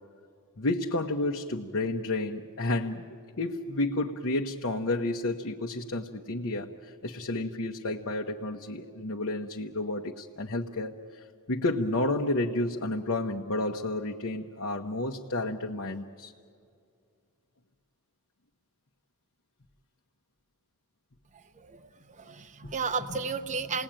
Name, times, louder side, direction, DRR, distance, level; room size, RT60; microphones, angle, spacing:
voice 1, 0.6-3.0 3.4-11.2 11.5-16.3 22.6-22.7, left 2 dB, 60° left, 0 dB, 1.0 m, -31 dB
voice 2, 21.3-23.8, right 5 dB, 35° right, 9 dB, 0.8 m, -34 dB
29.0 x 19.0 x 8.9 m, 2.4 s
head